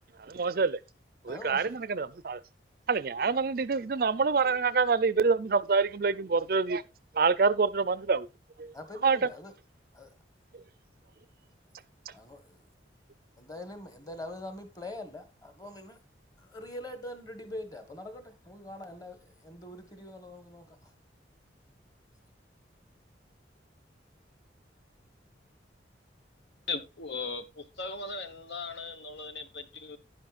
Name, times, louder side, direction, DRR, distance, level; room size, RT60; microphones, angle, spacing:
voice 1, 0.3-0.8 1.3-2.4 2.9-6.8 7.2-8.3 8.6-8.7 9.0-9.2, right 4 dB, 50° right, 0.5 m, -26 dB
voice 2, 1.3-1.8 8.7-9.5 9.9-10.1 12.1-12.6 13.4-16.0 16.4-20.9, left 1 dB, 20° left, 1.6 m, -43 dB
voice 3, 26.7-30.0, left 4 dB, 70° left, 1.2 m, -38 dB
10.5 x 10.5 x 2.5 m
head